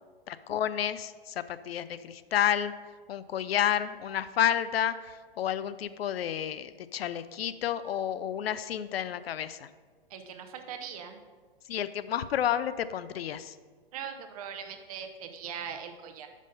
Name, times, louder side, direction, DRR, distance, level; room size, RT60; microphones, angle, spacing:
voice 1, 0.3-2.7 3.1-9.7 11.7-13.6, left 10 dB, 85° left, 14 dB, 0.5 m, -30 dB
voice 2, 10.1-11.2 13.9-16.3, right 7 dB, 40° right, 6 dB, 0.7 m, -40 dB
5.4 x 5.2 x 5.2 m, 1.5 s
hypercardioid pair, 150°, 30 cm